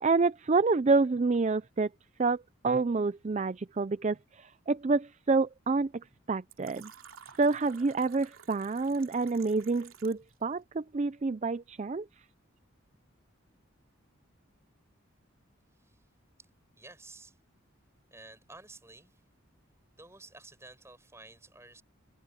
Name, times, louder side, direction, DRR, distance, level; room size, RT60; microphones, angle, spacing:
voice 1, 0.0-1.9 2.2-5.9 6.3-6.9 7.4-12.1, right 3 dB, 35° right, 0.4 m, -28 dB
Fill (with liquid), 6.5-10.3, right 7 dB, 85° right, 2.7 m, -53 dB
voice 2, 16.8-17.4 18.1-19.2 19.9-21.8, right 2 dB, 15° right, 5.2 m, -52 dB
head